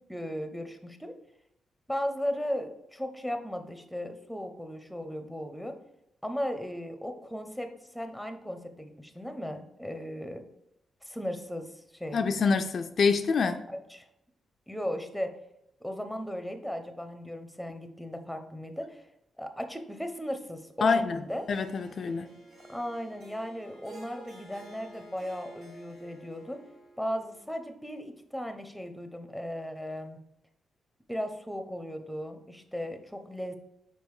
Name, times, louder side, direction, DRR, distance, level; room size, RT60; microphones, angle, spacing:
voice 1, 0.1-1.1 1.9-5.8 6.2-10.4 11.0-11.7 11.9-12.2 13.7-14.0 14.7-15.3 15.8-19.1 19.4-21.5 22.7-26.6 27.0-30.2 31.1-33.6, equal, ahead, 7 dB, 0.8 m, -36 dB
voice 2, 12.1-13.7 20.8-21.2 21.5-22.3, left 5 dB, 55° left, 7 dB, 0.4 m, -26 dB
Harp, 21.3-27.7, right 1 dB, 80° right, 2.0 m, -51 dB
5.2 x 4.3 x 4.8 m, 0.80 s
cardioid pair, 85°, 0 cm